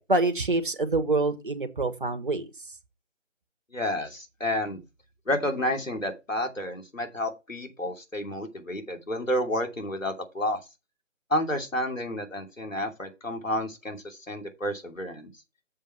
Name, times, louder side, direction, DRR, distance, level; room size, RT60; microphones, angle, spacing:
voice 1, 0.0-2.5, right 2 dB, 40° right, 1.3 m, -26 dB
voice 2, 3.7-4.8 5.3-10.6 11.3-15.3, left 1 dB, 80° left, 2.9 m, -30 dB
7.5 x 7.2 x 4.5 m
figure-of-eight pair, 155°, 38 cm